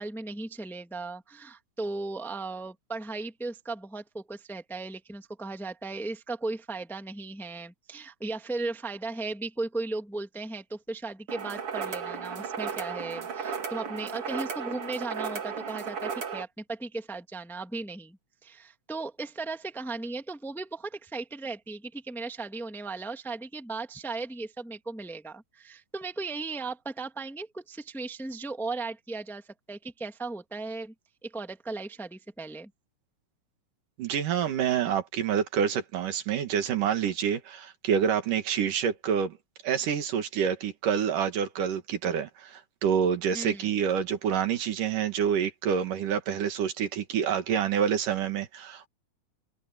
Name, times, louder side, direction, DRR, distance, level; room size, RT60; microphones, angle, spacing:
voice 1, 0.0-30.9 31.2-32.7 43.3-43.7, right 3 dB, ahead, 1.4 m, -36 dB
sound 1, 11.3-16.4, right 6 dB, 45° right, 3.1 m, -35 dB
voice 2, 34.0-39.4 39.6-48.9, right 8 dB, 80° right, 3.4 m, -27 dB
omnidirectional pair, 3.7 m